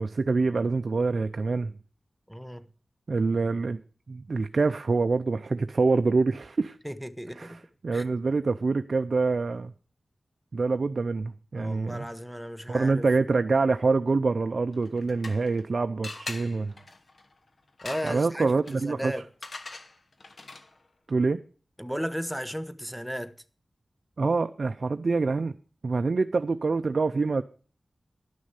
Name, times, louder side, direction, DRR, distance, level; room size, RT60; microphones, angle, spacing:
voice 1, 0.0-1.7 3.1-3.8 4.1-6.8 7.4-9.7 10.5-12.1 12.7-16.7 18.0-19.1 21.1-21.4 24.2-25.5 25.8-27.4, right 4 dB, 70° right, 0.5 m, -26 dB
voice 2, 2.3-2.7 6.8-7.6 7.9-8.0 11.5-13.1 17.8-19.2 21.8-23.3, equal, ahead, 1.1 m, -35 dB
sound 1, 14.7-15.7 16.0-20.9, left 3 dB, 65° left, 1.0 m, -43 dB
11.5 x 6.3 x 8.1 m
cardioid pair, 50°, 0 cm